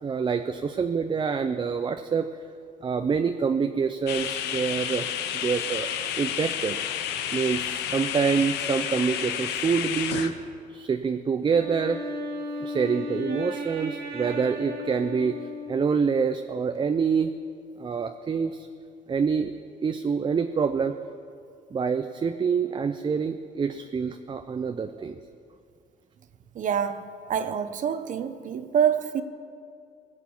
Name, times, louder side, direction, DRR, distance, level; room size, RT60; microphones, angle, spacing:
voice 1, 0.0-2.3 2.8-5.1 5.4-5.9 6.2-6.8 7.3-10.3 10.7-12.0 12.6-15.4 15.7-17.3 17.8-18.7 19.1-19.5 19.8-21.0 21.7-25.2, right 6 dB, 30° right, 8 dB, 0.5 m, -26 dB
sound 1, 4.1-10.3, left 9 dB, 85° left, 0.9 m, -30 dB
Wind instrument woodwind instrument, 11.4-16.2, left 2 dB, 75° right, 2.3 m, -35 dB
voice 2, 26.5-29.2, right 8 dB, 50° right, 11 dB, 0.9 m, -26 dB
20.0 x 8.2 x 7.1 m, 2.4 s
cardioid pair, 110°, 17 cm